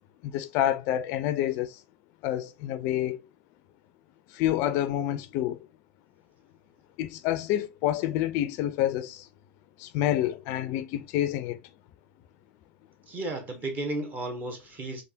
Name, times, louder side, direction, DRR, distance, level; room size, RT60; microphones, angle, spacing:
voice 1, 0.2-1.8 2.2-3.2 4.3-5.6 7.0-9.3 9.8-11.6, left 12 dB, 50° left, 0.3 m, -28 dB
voice 2, 13.1-15.0, right 2 dB, 30° right, 1.1 m, -33 dB
3.4 x 2.5 x 2.6 m
hypercardioid pair, 95°, 6 cm